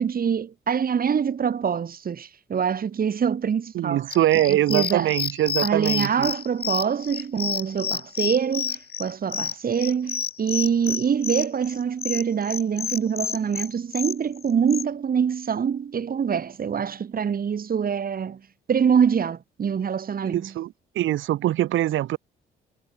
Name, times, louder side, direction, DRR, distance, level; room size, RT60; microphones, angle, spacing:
voice 1, 0.0-4.0 4.5-5.1 5.6-18.4 18.7-20.5, right 7 dB, 45° right, 3.3 m, -25 dB
voice 2, 3.7-6.3 20.3-22.2, right 13 dB, 75° right, 1.2 m, -23 dB
sound 1, 4.1-14.8, left 8 dB, 50° left, 3.2 m, -30 dB
cardioid pair, 90°, 20 cm